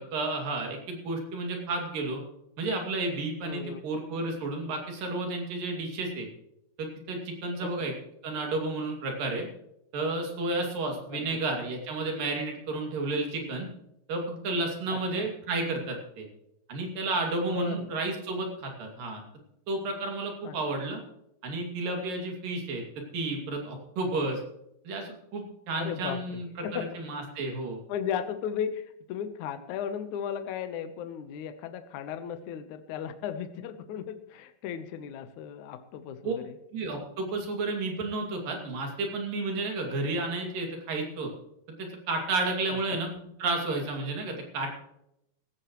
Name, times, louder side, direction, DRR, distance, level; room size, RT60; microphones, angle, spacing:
voice 1, 0.0-2.2 2.6-6.3 6.8-7.9 8.2-9.5 9.9-13.7 14.1-16.3 16.7-19.2 19.7-21.0 21.4-24.4 24.9-26.5 26.7-27.8 36.2-36.3 36.7-41.3 41.8-43.1 43.4-44.7, right 2 dB, 55° right, 2 dB, 3.9 m, -31 dB
voice 2, 3.4-3.8 11.1-11.4 14.9-15.3 17.4-17.9 20.4-20.6 25.8-26.9 27.9-36.6 42.7-42.8, left 8 dB, 85° left, 9 dB, 1.7 m, -36 dB
17.0 x 15.5 x 3.1 m, 0.81 s
omnidirectional pair, 5.1 m